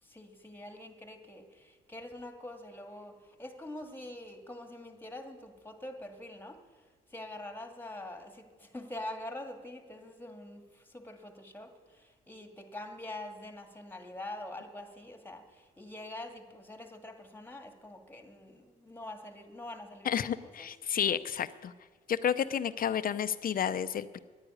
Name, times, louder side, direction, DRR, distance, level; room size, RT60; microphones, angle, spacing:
voice 1, 0.0-20.7, left 1 dB, 10° left, 1.8 m, -45 dB
voice 2, 20.0-21.7 22.1-24.2, left 8 dB, 45° left, 0.7 m, -31 dB
10.0 x 9.8 x 9.6 m
cardioid pair, 90°, 20 cm